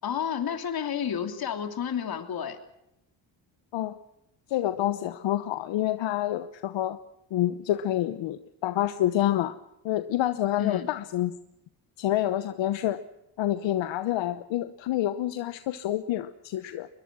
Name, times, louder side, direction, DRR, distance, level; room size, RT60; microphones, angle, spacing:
voice 1, 0.0-2.6 10.6-10.9, left 8 dB, 55° left, 7 dB, 3.1 m, -30 dB
voice 2, 4.5-7.0 7.3-9.5 9.8-11.3 12.0-13.0 13.4-16.9, left 13 dB, 75° left, 12 dB, 1.1 m, -28 dB
23.0 x 22.0 x 6.2 m, 0.84 s
cardioid pair, 105°, 44 cm